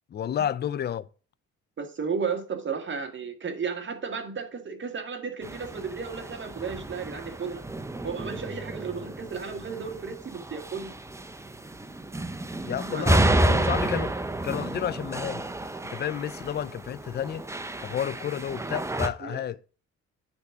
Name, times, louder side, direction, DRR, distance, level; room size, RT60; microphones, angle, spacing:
voice 1, 0.1-1.1 12.6-14.1 14.4-15.5 15.8-17.5 17.8-19.7, left 9 dB, 35° left, 0.4 m, -31 dB
voice 2, 1.8-7.6 8.0-10.9 12.8-13.5 14.0-14.1 19.2-19.4, right 5 dB, 40° right, 1.6 m, -34 dB
sound 1, 5.4-19.1, right 1 dB, 10° right, 0.6 m, -30 dB
9.6 x 3.7 x 5.9 m
cardioid pair, 90°, 30 cm